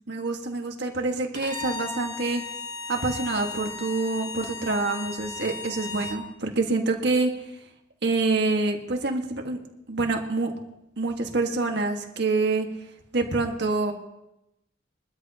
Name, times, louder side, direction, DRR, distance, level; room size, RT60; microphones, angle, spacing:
voice 1, 0.1-2.4 2.9-7.3 8.0-9.6 9.9-10.5 11.0-12.7 13.1-13.9, right 3 dB, 60° right, 3 dB, 1.7 m, -26 dB
Bowed string instrument, 1.3-6.2, left 4 dB, 25° left, 1.8 m, -36 dB
22.5 x 13.0 x 2.9 m, 0.89 s
head